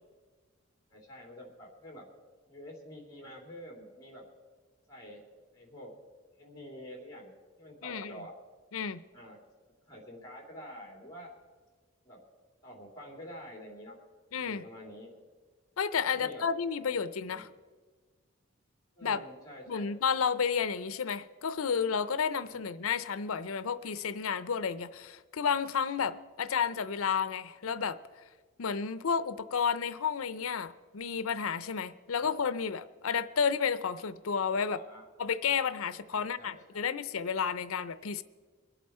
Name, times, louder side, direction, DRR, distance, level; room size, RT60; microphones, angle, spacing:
voice 1, 0.9-2.1 2.5-4.3 4.9-5.2 5.5-5.9 6.4-8.4 9.1-9.4 9.9-11.3 12.0-12.2 12.6-14.0 14.4-15.1 16.1-16.5 16.8-16.9 17.3-17.5 19.0-19.9 22.5-22.6 32.2-32.3 34.5-35.1 36.1-36.9, equal, 15° left, 0 dB, 3.0 m, -48 dB
voice 2, 7.8-8.2 8.7-9.0 14.3-14.6 15.8-17.5 19.0-19.2 19.7-28.0 28.6-34.8 35.2-38.2, left 6 dB, 80° left, 15 dB, 0.6 m, -31 dB
23.5 x 8.1 x 4.3 m, 1.4 s
head